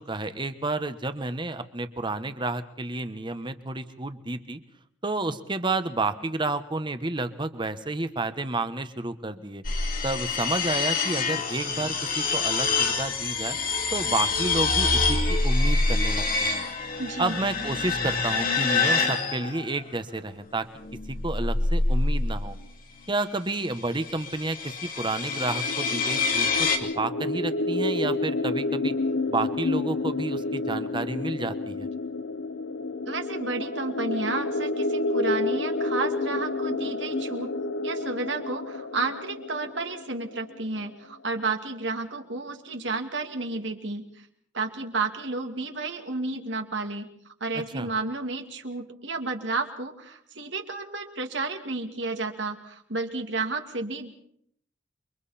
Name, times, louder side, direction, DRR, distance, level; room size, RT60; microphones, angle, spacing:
voice 1, 0.0-4.6 5.0-9.6 10.0-13.6 13.9-16.6 17.2-20.7 21.1-22.6 23.1-26.7 27.0-28.9 29.3-31.9 47.5-47.9, right 2 dB, 25° right, 11 dB, 1.3 m, -30 dB
sound 1, 9.6-19.8 20.8-22.6 23.8-26.8, left 3 dB, 50° left, 2.6 m, -26 dB
voice 2, 17.0-17.4 33.1-37.5 37.8-44.0 44.5-47.1 47.4-54.1, right 3 dB, 75° right, 4 dB, 2.5 m, -31 dB
sound 2, 25.3-40.9, left 2 dB, 85° left, 0.9 m, -30 dB
28.5 x 23.5 x 4.3 m, 0.66 s
head